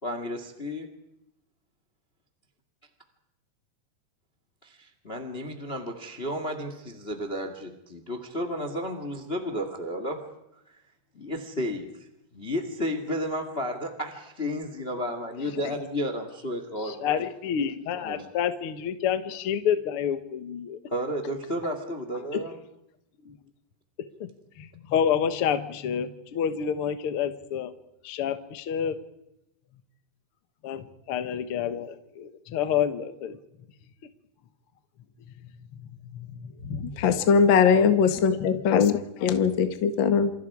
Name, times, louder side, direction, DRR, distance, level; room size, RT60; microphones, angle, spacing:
voice 1, 0.0-0.9 4.6-10.3 10.6-10.8 11.1-11.9 12.3-17.1 18.0-18.2 20.9-22.6, equal, 35° left, 0.9 m, -32 dB
voice 2, 16.8-20.8 22.3-22.4 23.2-23.4 24.0-24.3 24.6-27.7 28.0-29.0 30.6-33.4 35.7-37.0 37.7-37.9 38.7-38.8, left 8 dB, 75° left, 1.2 m, -29 dB
voice 3, 36.6-40.3, left 6 dB, 55° left, 1.3 m, -21 dB
28.0 x 27.0 x 4.8 m
omnidirectional pair, 4.6 m